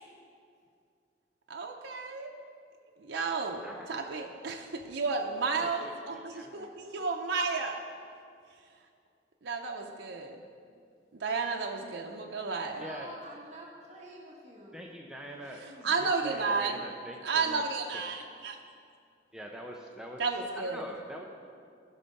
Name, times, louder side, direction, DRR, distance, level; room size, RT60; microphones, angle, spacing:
voice 1, 1.5-2.3 3.0-7.8 9.4-10.4 11.1-12.8 15.8-16.8 17.2-18.6 20.2-20.9, right 4 dB, 85° right, 1 dB, 0.6 m, -32 dB
voice 2, 5.6-6.7 12.8-13.1 14.7-15.7 16.0-17.6 19.3-20.2 20.6-21.2, right 1 dB, 5° right, 0 dB, 0.5 m, -44 dB
voice 3, 12.6-14.8 15.3-16.0, right 1 dB, 40° right, -3 dB, 1.4 m, -48 dB
14.5 x 5.6 x 5.3 m, 2.4 s
head